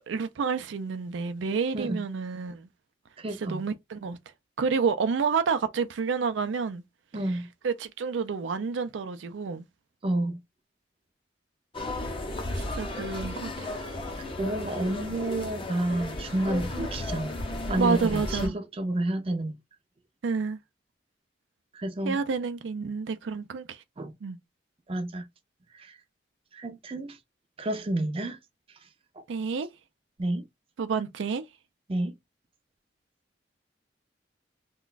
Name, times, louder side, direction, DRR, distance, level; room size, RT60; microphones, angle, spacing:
voice 1, 0.0-2.7 3.4-4.2 4.6-6.8 7.3-7.4 7.6-9.6 12.5-13.7 16.8-16.9 17.8-18.5 20.2-20.6 22.0-23.8 24.2-24.4 29.3-29.7 30.8-31.4, right 5 dB, 85° right, 0.4 m, -29 dB
voice 2, 3.2-3.6 7.1-7.5 10.0-10.4 14.2-17.3 17.7-19.5 21.7-22.2 24.0-24.1 24.9-25.2 25.7-26.0 26.5-27.2 27.6-28.4 29.2-29.3 30.2-30.4 31.9-32.1, right 1 dB, 30° right, 0.5 m, -30 dB
sound 1, 11.7-18.5, left 1 dB, 30° left, 0.6 m, -34 dB
2.4 x 2.2 x 3.8 m
head